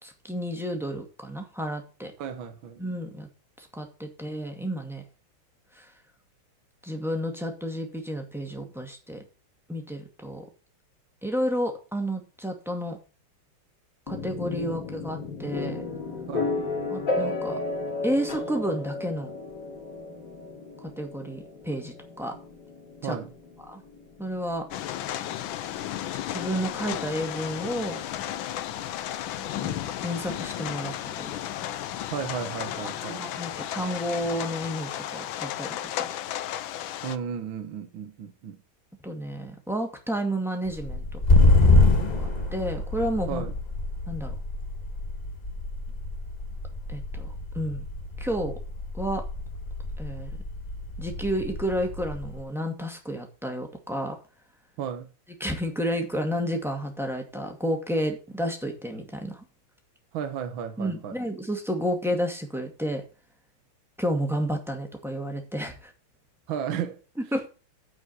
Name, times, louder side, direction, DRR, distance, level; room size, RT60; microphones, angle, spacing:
voice 1, 0.0-2.1 2.8-3.3 3.6-5.0 5.8-5.9 6.8-9.2 9.7-10.4 11.2-13.0 14.1-15.9 16.9-17.6 18.0-19.3 20.8-22.3 23.0-23.2 23.7-23.8 24.2-24.6 26.3-28.0 29.6-31.4 32.8-36.1 39.0-41.2 42.1-43.4 44.1-44.3 46.9-47.3 47.5-47.8 48.2-48.5 48.9-49.2 50.0-50.3 51.0-54.2 55.4-59.4 60.8-63.0 64.0-65.9 67.3-67.5, equal, ahead, 2.0 m, -31 dB
voice 2, 2.2-2.8 16.3-16.6 23.0-23.3 32.1-33.2 37.0-38.6 43.3-43.5 54.8-55.1 60.1-61.2 66.5-67.0, right 8 dB, 70° right, 1.8 m, -34 dB
sound 1, 14.1-27.8, left 3 dB, 50° left, 3.2 m, -34 dB
sound 2, 24.7-37.2, left 12 dB, 75° left, 1.4 m, -34 dB
sound 3, 40.7-52.4, left 2 dB, 25° left, 1.1 m, -26 dB
9.7 x 5.1 x 7.9 m
omnidirectional pair, 2.4 m